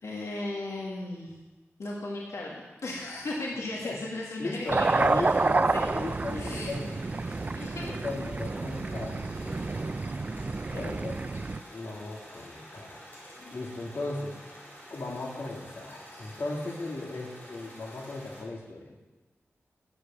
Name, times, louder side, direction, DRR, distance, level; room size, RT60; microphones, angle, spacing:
voice 1, 0.0-1.4 1.8-5.4 5.7-5.9 6.3-6.7 7.2-7.9 9.5-10.9 13.4-13.5, left 2 dB, 80° left, -3 dB, 1.8 m, -37 dB
voice 2, 4.4-7.0 7.8-9.9 10.7-19.0, left 2 dB, 60° left, -1 dB, 2.1 m, -37 dB
sound 1, 4.6-18.4, equal, 40° left, 4.2 m, -49 dB
sound 2, 4.7-11.6, right 3 dB, 35° right, 0.3 m, -29 dB
10.0 x 7.7 x 6.9 m, 1.1 s
wide cardioid pair, 85°, 5 cm